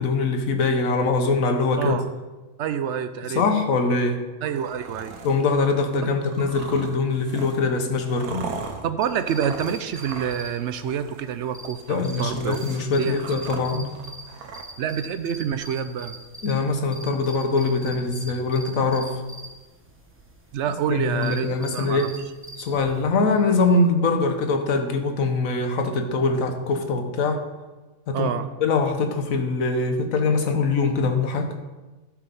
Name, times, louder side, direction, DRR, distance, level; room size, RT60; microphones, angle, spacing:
voice 1, 0.0-2.0 3.3-4.2 5.2-8.4 11.9-13.9 16.4-19.2 20.9-22.1 22.6-27.4 28.1-28.3 28.6-31.5, left 3 dB, 70° left, 6 dB, 1.4 m, -23 dB
voice 2, 2.6-3.4 4.4-5.2 6.0-6.2 8.8-12.6 13.0-13.2 14.8-16.2 20.5-22.1 28.1-28.5, right 8 dB, 65° right, 11 dB, 0.8 m, -27 dB
sound 1, 4.5-5.4 6.2-10.5 10.7-11.2 11.7-14.6, right 4 dB, 85° right, 1.4 m, -39 dB
sound 2, 9.0-23.0, right 1 dB, 10° right, 1.0 m, -43 dB
12.0 x 4.9 x 5.3 m, 1.2 s
omnidirectional pair, 1.5 m